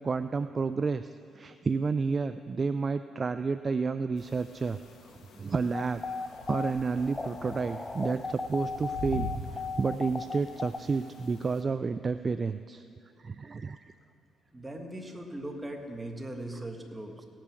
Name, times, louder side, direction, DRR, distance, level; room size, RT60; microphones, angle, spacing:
voice 1, 0.0-4.8 5.4-6.0 6.5-12.8 13.2-13.9, right 4 dB, 35° right, 11 dB, 0.3 m, -30 dB
sound 1, 4.2-11.6, left 2 dB, 70° left, 1.3 m, -44 dB
sound 2, 5.7-10.8, left 4 dB, 20° left, 0.6 m, -36 dB
voice 2, 14.5-17.2, right 1 dB, 15° right, 3 dB, 1.7 m, -39 dB
17.0 x 9.0 x 6.2 m, 2.5 s
cardioid pair, 90°, 0 cm